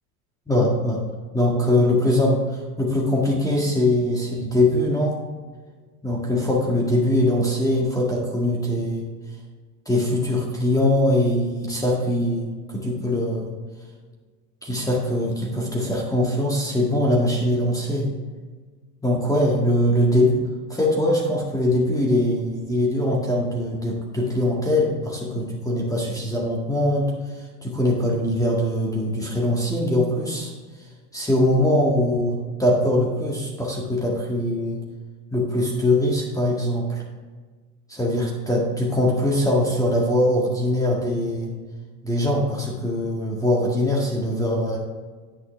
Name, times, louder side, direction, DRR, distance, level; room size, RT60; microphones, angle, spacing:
voice 1, 0.5-1.0 1.3-5.1 6.0-9.1 9.9-13.5 14.6-18.1 19.0-20.4 20.7-30.5 31.1-34.8 35.3-37.0 37.9-41.5 42.0-44.8, left 1 dB, 5° left, -2 dB, 1.8 m, -22 dB
9.3 x 9.1 x 3.4 m, 1.4 s
hypercardioid pair, 90°, 50 cm